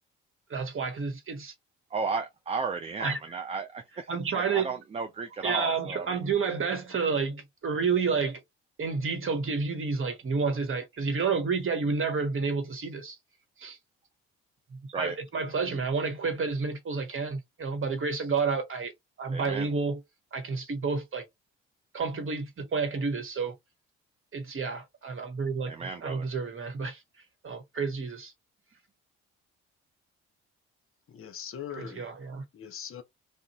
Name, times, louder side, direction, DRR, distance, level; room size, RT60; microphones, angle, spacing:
voice 1, 0.5-1.5 3.0-3.2 4.1-4.7 5.4-8.4 8.8-13.2 13.6-13.8 14.7-18.9 19.2-20.0 20.3-21.2 21.9-23.5 24.3-27.0 27.4-28.3 31.7-32.4, right 5 dB, 35° right, 1.1 m, -30 dB
voice 2, 1.9-6.2 14.9-15.2 19.3-19.7 25.6-26.3, right 5 dB, 20° right, 0.4 m, -34 dB
voice 3, 15.4-15.8 31.1-32.1 32.5-33.0, left 8 dB, 40° left, 0.7 m, -41 dB
2.5 x 2.1 x 2.8 m
hypercardioid pair, 45°, 35 cm